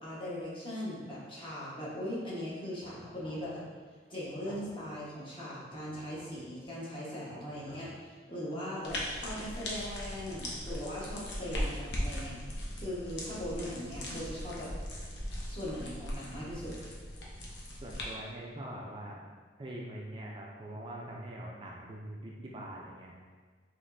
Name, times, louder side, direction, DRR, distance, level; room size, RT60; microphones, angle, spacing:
voice 1, 0.0-3.7 4.1-12.4 12.7-14.7 15.5-16.8, equal, 30° left, -8 dB, 1.2 m, -39 dB
sound 1, 2.8-3.5 4.2-5.0 5.7-6.5 7.3-8.0 8.7-9.3 10.1-11.0, left 1 dB, 45° left, 1.4 m, -53 dB
sound 2, 8.8-18.0, equal, 75° left, 0.8 m, -39 dB
voice 2, 17.8-19.2 19.6-23.1, right 1 dB, 30° right, -2 dB, 0.4 m, -43 dB
5.1 x 3.1 x 2.6 m, 1.5 s
head